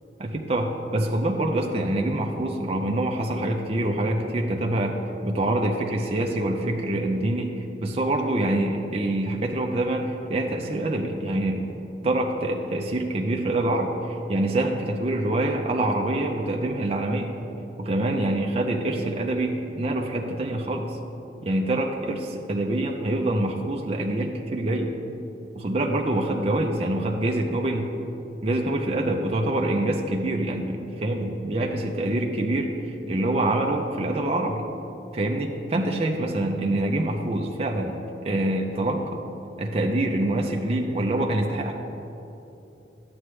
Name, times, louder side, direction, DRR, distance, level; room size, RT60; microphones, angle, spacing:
voice 1, 0.2-5.0 5.2-7.5 7.8-11.6 12.0-17.3 17.8-21.0 21.4-24.9 25.5-27.9 28.4-34.6 35.1-39.2 39.6-41.7, right 1 dB, 35° right, 1 dB, 0.6 m, -25 dB
11.0 x 7.9 x 3.2 m, 2.9 s
head